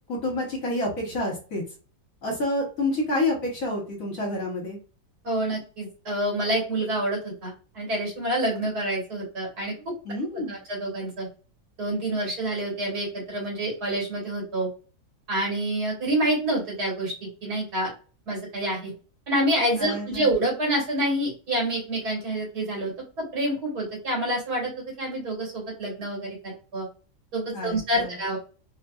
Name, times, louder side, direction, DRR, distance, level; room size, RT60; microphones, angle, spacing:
voice 1, 0.1-1.6 2.2-4.8 10.0-10.6 19.8-20.3 27.5-28.2, left 1 dB, 55° left, -1 dB, 1.5 m, -28 dB
voice 2, 5.2-9.7 10.1-11.3 11.8-14.7 15.3-17.9 18.3-18.9 19.3-26.9 27.3-28.4, right 1 dB, 70° right, -2 dB, 2.2 m, -27 dB
4.0 x 2.4 x 2.3 m, 0.36 s
omnidirectional pair, 1.7 m